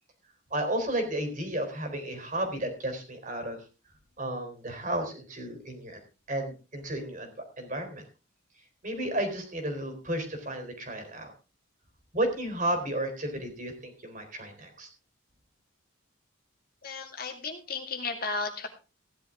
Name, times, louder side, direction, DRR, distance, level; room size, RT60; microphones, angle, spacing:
voice 1, 0.5-3.6 4.2-6.0 6.3-7.3 7.6-8.0 8.8-11.3 12.1-14.9, right 1 dB, 40° right, 5 dB, 3.7 m, -32 dB
voice 2, 16.8-18.7, left 4 dB, 45° left, 4 dB, 2.3 m, -34 dB
16.0 x 11.0 x 3.7 m, 0.32 s
head